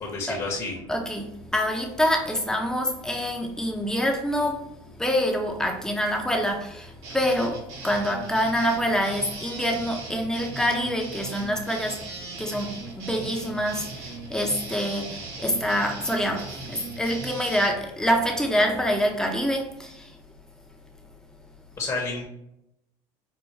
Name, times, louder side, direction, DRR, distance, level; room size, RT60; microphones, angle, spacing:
voice 1, 0.0-0.7 21.8-22.3, left 3 dB, 25° left, 1.0 m, -30 dB
voice 2, 0.9-12.0 12.4-20.2, equal, 5° left, 0.7 m, -26 dB
sound 1, 7.0-17.7, right 3 dB, 60° right, 1.3 m, -39 dB
4.7 x 2.2 x 3.2 m
supercardioid pair, 105°, 13 cm